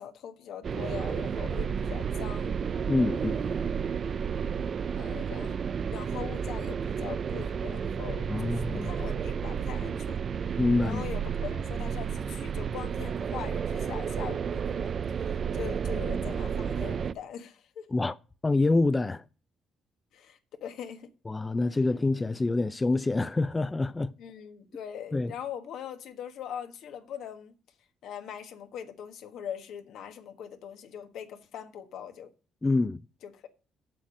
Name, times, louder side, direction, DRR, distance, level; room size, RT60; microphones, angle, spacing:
voice 1, 0.0-2.5 3.1-3.7 4.9-5.6 5.9-10.2 10.5-17.9 20.1-21.1 24.2-27.5 28.0-32.3 33.2-33.5, left 8 dB, 75° left, 1.4 m, -42 dB
sound 1, 0.6-17.1, right 7 dB, 55° right, 0.5 m, -31 dB
voice 2, 2.9-3.4 8.3-8.9 10.6-11.0 17.9-18.2 18.4-19.2 21.3-24.1 25.1-25.3 32.6-33.0, left 2 dB, 25° left, 0.5 m, -26 dB
7.7 x 7.0 x 6.2 m
supercardioid pair, 65°, 0 cm